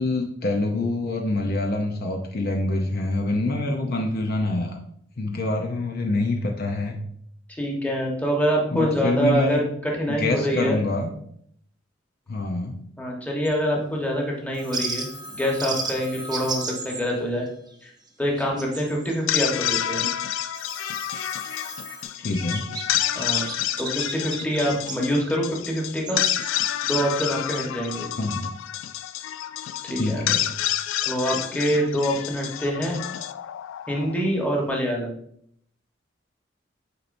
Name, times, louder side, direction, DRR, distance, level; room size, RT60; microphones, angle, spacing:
voice 1, 0.0-4.8 5.2-7.0 8.7-9.6 10.2-11.1 12.3-12.7 22.2-22.6 28.2-28.4 30.0-30.4, left 2 dB, 55° left, 2 dB, 0.7 m, -25 dB
voice 2, 7.5-10.8 13.0-17.4 17.8-17.9 18.2-20.0 23.1-23.4 23.8-26.2 26.8-28.1 29.9-30.3 31.0-33.0 33.9-35.1, equal, 10° left, -2 dB, 1.3 m, -25 dB
sound 1, 13.4-13.6 14.7-15.1 15.6-16.0 16.3-17.1 17.5-17.7 18.1-19.4 20.1-21.8 22.1-22.8 23.1-25.0 25.9-26.5 26.9-27.0, right 4 dB, 20° right, 0.8 m, -34 dB
Telephone, 14.5-17.6 20.5-22.0, equal, 70° left, 2.5 m, -41 dB
sound 2, 19.1-34.3, left 12 dB, 90° left, 0.3 m, -29 dB
8.3 x 4.4 x 2.6 m, 0.68 s
head